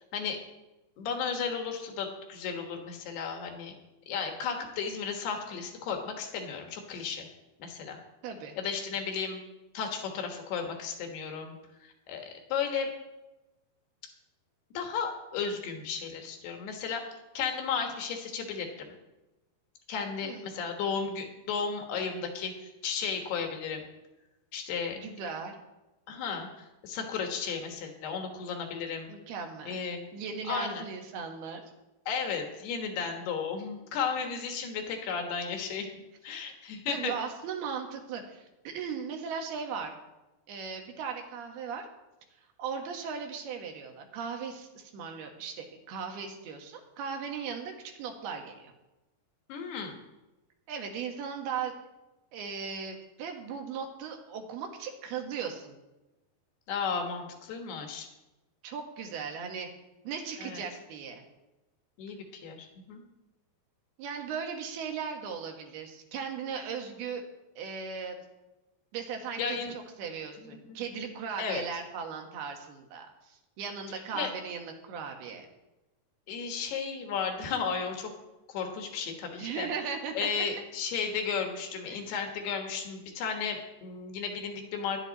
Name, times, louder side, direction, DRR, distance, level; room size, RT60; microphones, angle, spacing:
voice 1, 1.0-3.7 4.1-7.3 7.6-8.0 8.6-9.4 9.8-11.6 11.8-12.9 14.7-18.9 19.9-23.9 24.5-25.0 26.1-29.1 29.6-30.1 30.5-30.8 32.1-35.9 36.2-37.2 49.5-50.0 56.7-58.1 60.4-60.6 62.0-63.0 69.4-69.7 70.7-70.8 71.4-71.6 74.1-74.3 76.3-78.1 78.5-79.7 80.2-85.0, left 6 dB, 90° left, 3 dB, 3.5 m, -34 dB
voice 2, 8.2-8.6 20.2-20.5 24.9-25.6 29.1-29.8 30.1-31.6 36.9-39.9 40.5-41.9 42.6-48.7 50.7-51.8 52.3-55.8 58.6-59.7 60.1-61.2 64.0-67.2 67.6-68.2 68.9-75.5 79.4-80.3 81.9-82.1, right 6 dB, 80° right, 3 dB, 3.4 m, -37 dB
15.0 x 11.5 x 4.1 m, 1.0 s
omnidirectional pair, 4.5 m